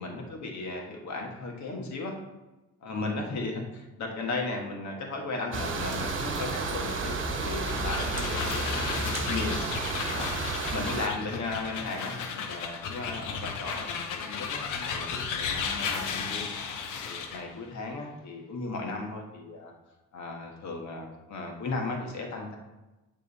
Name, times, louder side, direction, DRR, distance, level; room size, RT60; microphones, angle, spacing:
voice 1, 0.0-2.2 2.8-9.6 10.1-10.4 10.7-16.5 17.0-19.7 20.1-22.6, left 3 dB, 65° left, 1 dB, 1.5 m, -36 dB
sound 1, 5.5-11.1, right 3 dB, 40° right, 1.1 m, -31 dB
sound 2, 7.4-17.5, left 6 dB, 90° left, 0.9 m, -34 dB
9.2 x 3.7 x 4.2 m, 1.0 s
cardioid pair, 90°, 30 cm